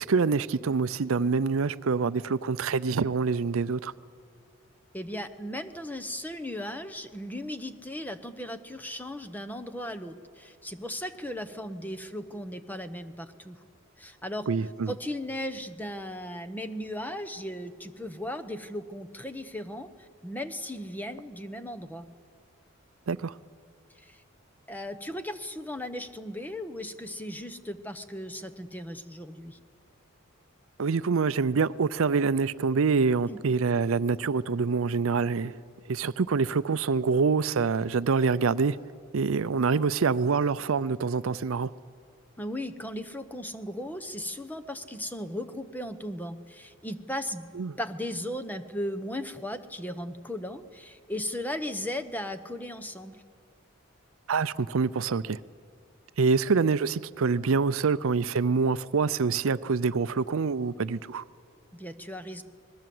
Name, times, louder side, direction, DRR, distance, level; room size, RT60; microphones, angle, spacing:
voice 1, 0.0-3.9 14.5-14.9 23.1-23.4 30.8-35.6 35.9-38.8 39.1-41.7 47.6-47.7 54.3-55.4 56.2-61.2, right 5 dB, 70° right, 0.5 m, -26 dB
voice 2, 4.9-13.6 14.0-14.5 14.9-22.1 23.9-24.2 24.7-29.6 33.3-33.4 42.4-47.5 47.8-53.2 61.7-62.4, left 1 dB, 10° left, 0.9 m, -36 dB
26.5 x 20.5 x 7.8 m
head